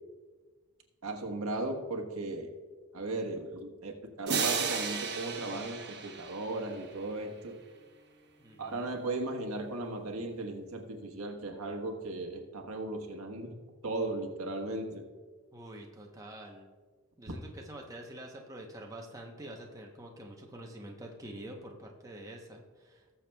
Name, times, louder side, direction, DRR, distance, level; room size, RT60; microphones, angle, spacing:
voice 1, 1.0-2.5 2.9-7.5 8.6-13.5 13.8-15.0, right 2 dB, 85° right, 2 dB, 1.3 m, -36 dB
sound 1, 4.3-6.9, right 5 dB, 50° right, 1.1 m, -34 dB
voice 2, 8.4-9.0 15.5-16.7 17.2-23.1, right 1 dB, 15° right, 0 dB, 0.8 m, -46 dB
19.5 x 7.0 x 2.3 m, 1.4 s
head